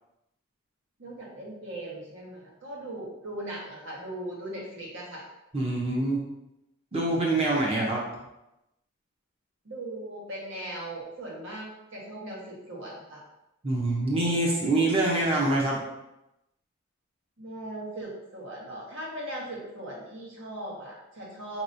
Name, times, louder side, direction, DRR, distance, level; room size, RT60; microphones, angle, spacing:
voice 1, 1.0-5.3 9.6-13.2 14.1-14.6 14.9-15.4 17.4-21.6, right 1 dB, 70° right, -4 dB, 1.4 m, -39 dB
voice 2, 5.5-6.2 6.9-8.0 13.6-15.8, right 2 dB, 30° right, -3 dB, 0.8 m, -25 dB
5.2 x 2.9 x 2.7 m, 0.90 s
head